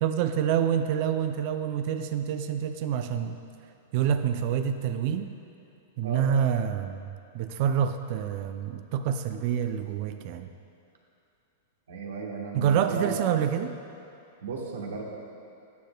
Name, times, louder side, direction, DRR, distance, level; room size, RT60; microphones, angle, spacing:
voice 1, 0.0-3.4 3.9-5.3 6.0-7.1 7.3-10.5 12.5-13.8, right 8 dB, 50° right, 8 dB, 0.4 m, -27 dB
voice 2, 11.9-13.2 14.4-15.1, right 4 dB, 90° right, -1 dB, 1.3 m, -34 dB
9.8 x 9.3 x 2.2 m, 2.6 s
hypercardioid pair, 140°, 0 cm